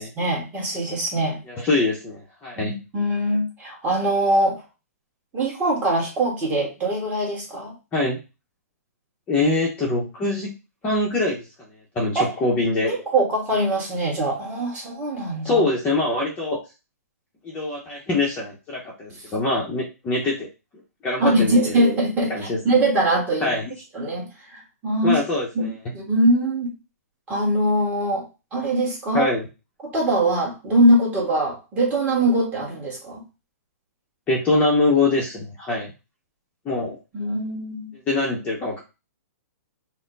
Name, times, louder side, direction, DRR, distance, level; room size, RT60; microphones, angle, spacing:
voice 1, 0.0-1.4 2.6-4.6 5.3-7.7 12.1-12.3 12.9-15.6 21.2-23.6 23.9-25.2 25.5-26.7 27.3-29.3 29.9-33.2 37.1-37.9, right 1 dB, 15° right, -3 dB, 1.6 m, -22 dB
voice 2, 1.5-2.7 7.9-8.2 9.3-10.5 10.8-11.4 11.9-12.9 15.4-16.6 17.4-20.5 21.0-21.8 22.3-22.6 23.4-23.7 25.0-25.7 29.1-29.4 34.3-35.9 36.6-37.0 38.1-38.8, left 2 dB, 15° left, -3 dB, 0.9 m, -23 dB
4.1 x 2.2 x 3.9 m, 0.28 s
hypercardioid pair, 155°, 9 cm